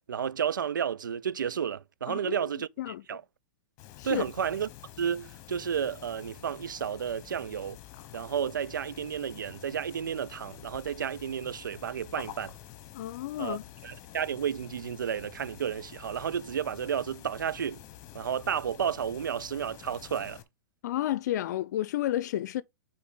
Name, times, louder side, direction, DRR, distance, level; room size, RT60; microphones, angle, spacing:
voice 1, 0.1-3.2 4.0-4.7 5.0-7.8 8.1-12.5 13.4-13.6 13.8-17.8 18.1-20.4, right 8 dB, 90° right, 0.4 m, -32 dB
voice 2, 2.1-2.5 2.8-3.2 4.0-4.2 12.9-13.6 20.8-22.6, left 13 dB, 65° left, 0.7 m, -31 dB
sound 1, 3.8-20.4, left 13 dB, 40° left, 1.3 m, -48 dB
8.5 x 4.6 x 3.9 m
hypercardioid pair, 120°, 10 cm